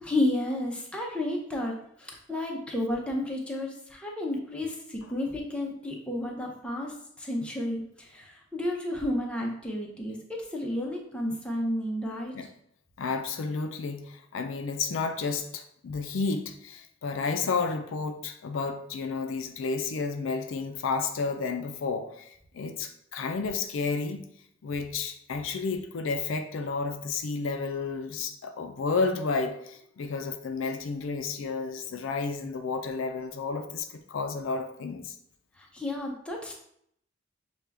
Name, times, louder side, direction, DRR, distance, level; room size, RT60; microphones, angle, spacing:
voice 1, 0.0-12.3 35.6-36.5, left 1 dB, 5° left, -1 dB, 0.6 m, -32 dB
voice 2, 13.0-22.3 22.5-24.3 24.6-35.1, left 4 dB, 75° left, 7 dB, 0.4 m, -31 dB
6.4 x 2.3 x 3.4 m, 0.71 s
head